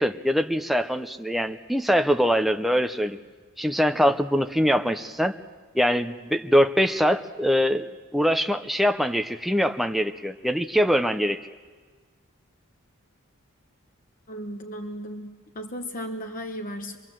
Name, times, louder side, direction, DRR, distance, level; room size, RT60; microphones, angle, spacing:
voice 1, 0.0-3.2 3.6-5.4 5.7-7.8 8.1-11.4, equal, ahead, 6 dB, 0.6 m, -23 dB
voice 2, 14.3-17.0, equal, 40° left, 4 dB, 1.0 m, -35 dB
25.5 x 21.0 x 7.6 m, 1.4 s
head